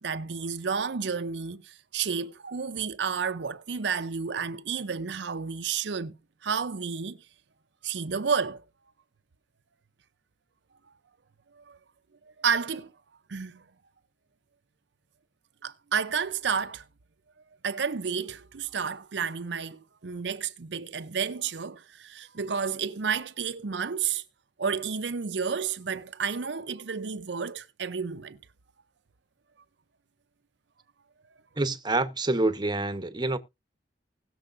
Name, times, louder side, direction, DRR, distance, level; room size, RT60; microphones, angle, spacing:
voice 1, 0.0-6.2 6.4-7.2 7.8-8.6 11.6-11.8 12.4-12.9 13.3-13.6 15.6-16.8 17.6-24.2 24.6-28.4, right 6 dB, 80° right, 0.7 m, -31 dB
voice 2, 31.6-33.4, right 2 dB, 25° right, 0.9 m, -27 dB
20.0 x 7.0 x 2.6 m
head